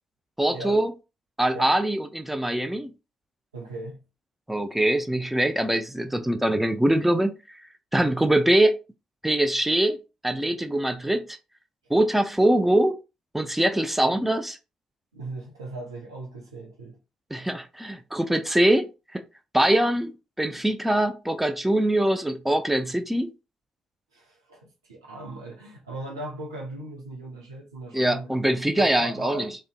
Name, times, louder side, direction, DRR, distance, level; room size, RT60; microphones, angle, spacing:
voice 1, 0.4-0.9 1.4-2.9 4.5-7.3 7.9-8.7 9.2-10.0 10.2-11.2 11.9-12.9 13.3-14.6 17.3-18.9 19.1-19.2 19.5-23.3 27.9-29.5, right 1 dB, 5° right, 0.4 m, -23 dB
voice 2, 3.5-4.0 15.1-17.0 24.1-28.3 28.7-29.6, right 2 dB, 80° right, 0.5 m, -38 dB
2.5 x 2.1 x 2.4 m
figure-of-eight pair, 40°, 2 cm